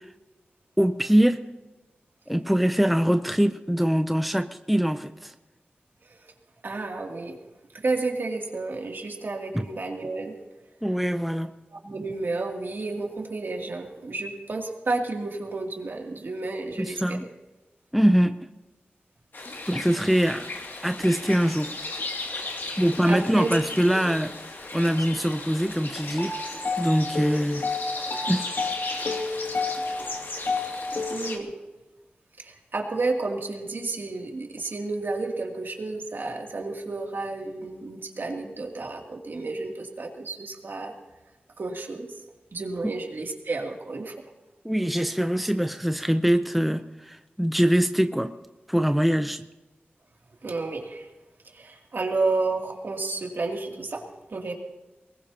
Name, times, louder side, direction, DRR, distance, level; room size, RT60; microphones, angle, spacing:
voice 1, 0.8-1.4 2.3-5.3 9.5-9.6 10.8-11.5 16.8-17.3 17.9-18.4 19.7-20.5 20.8-21.7 22.8-26.3 26.8-27.7 28.3-28.5 44.6-48.3 48.7-49.4, equal, ahead, 9 dB, 0.6 m, -23 dB
voice 2, 6.6-7.4 7.7-10.4 11.7-17.2 22.7-23.5 23.9-24.0 31.1-31.5 32.4-40.9 41.6-42.1 42.5-44.1 50.4-51.1 51.5-54.0 54.3-54.5, right 3 dB, 65° right, 0 dB, 2.8 m, -31 dB
sound 1, 19.3-31.4, left 3 dB, 65° left, 2.5 m, -32 dB
23.5 x 20.5 x 2.9 m, 1.1 s
wide cardioid pair, 90°, 4 cm